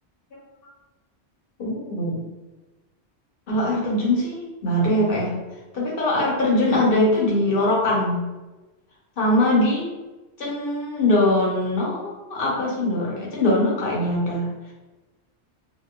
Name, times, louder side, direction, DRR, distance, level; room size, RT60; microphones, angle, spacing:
voice 1, 1.6-2.2 3.5-5.3 5.7-8.2 9.2-9.9 10.4-14.5, left 1 dB, 55° left, -4 dB, 0.9 m, -22 dB
2.9 x 2.2 x 2.2 m, 1.1 s
omnidirectional pair, 1.2 m